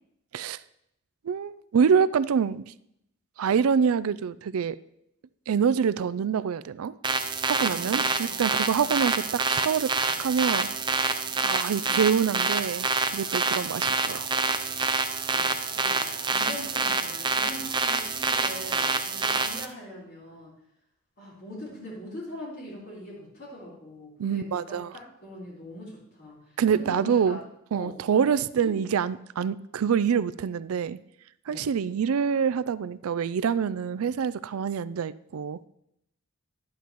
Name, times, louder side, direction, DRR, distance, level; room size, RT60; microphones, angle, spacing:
voice 1, 1.2-2.7 3.4-4.8 5.5-6.9 7.4-10.7 11.4-14.3 24.2-24.9 26.6-27.4 27.7-31.0 31.5-35.7, right 7 dB, 90° right, 17 dB, 0.4 m, -26 dB
sound 1, 7.0-19.7, right 4 dB, 20° right, 0.5 m, -27 dB
voice 2, 7.6-8.5 10.0-10.1 11.7-12.0 13.4-13.8 14.8-16.0 16.3-20.5 21.2-27.4 27.7-28.3 28.6-28.7 31.5-31.7, left 1 dB, 50° left, -7 dB, 3.8 m, -42 dB
11.5 x 10.0 x 3.0 m, 0.77 s
head